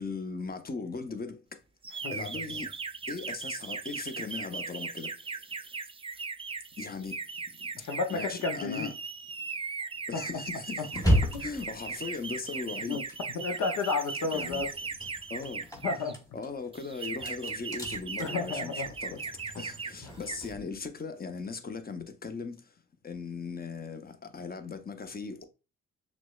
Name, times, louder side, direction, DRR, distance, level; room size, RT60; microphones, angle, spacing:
voice 1, 0.0-1.4 2.1-2.7 3.1-5.1 6.8-7.2 8.1-8.9 10.1-13.0 14.3-14.7 15.3-15.6 16.3-19.2 19.6-22.6 23.0-25.5, left 4 dB, 25° left, 0.8 m, -38 dB
sound 1, 1.8-16.1 16.7-19.9 20.2-20.5, right 5 dB, 15° right, 0.3 m, -38 dB
voice 2, 7.8-8.9 10.1-10.2 10.8-10.9 12.9-13.0 13.3-14.7 15.8-16.2 18.2-18.9, left 4 dB, 60° left, 0.8 m, -31 dB
sound 2, 10.9-13.9 14.2-20.6, equal, 10° left, 1.5 m, -34 dB
5.9 x 2.1 x 2.3 m
hypercardioid pair, 45°, 34 cm